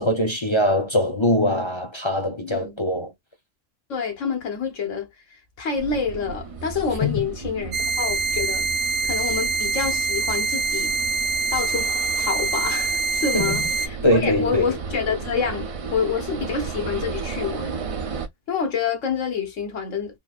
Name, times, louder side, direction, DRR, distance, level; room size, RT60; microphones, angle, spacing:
voice 1, 0.0-3.1 7.0-7.2 13.3-13.6 14.0-14.7, left 1 dB, 25° left, 0.8 m, -22 dB
voice 2, 2.4-2.8 3.9-5.1 5.6-8.7 9.0-10.9 11.5-11.9 12.2-17.7 18.5-20.2, left 6 dB, 90° left, 1.4 m, -27 dB
sound 1, 5.8-18.3, right 4 dB, 45° right, 0.4 m, -34 dB
sound 2, 7.7-13.9, right 3 dB, 65° right, 0.8 m, -25 dB
3.9 x 2.7 x 2.3 m
omnidirectional pair, 1.2 m